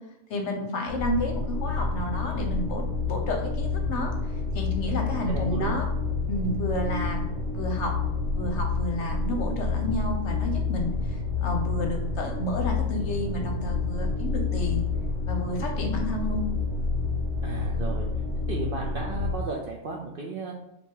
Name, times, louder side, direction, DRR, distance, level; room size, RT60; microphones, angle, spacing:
voice 1, 0.3-5.9 6.3-7.3 7.5-8.0 8.3-14.8 15.3-16.4, left 1 dB, 60° left, 2 dB, 0.9 m, -31 dB
sound 1, 0.9-19.4, left 4 dB, 25° left, 1.1 m, -29 dB
voice 2, 5.0-5.8 17.4-18.1 18.5-20.6, right 4 dB, 65° right, -1 dB, 0.5 m, -35 dB
3.4 x 2.9 x 4.4 m, 0.85 s
omnidirectional pair, 1.5 m